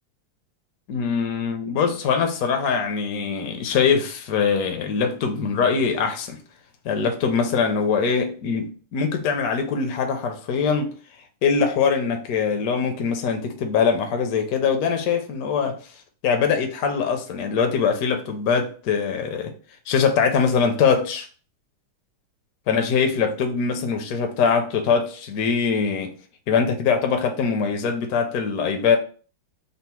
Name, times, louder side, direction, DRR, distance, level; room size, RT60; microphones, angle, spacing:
voice 1, 0.9-6.4 6.8-10.9 11.4-15.8 16.2-19.5 19.9-21.3 22.7-26.1 26.5-29.0, left 6 dB, 65° left, 1.0 m, -22 dB
4.0 x 2.0 x 4.3 m
omnidirectional pair, 2.1 m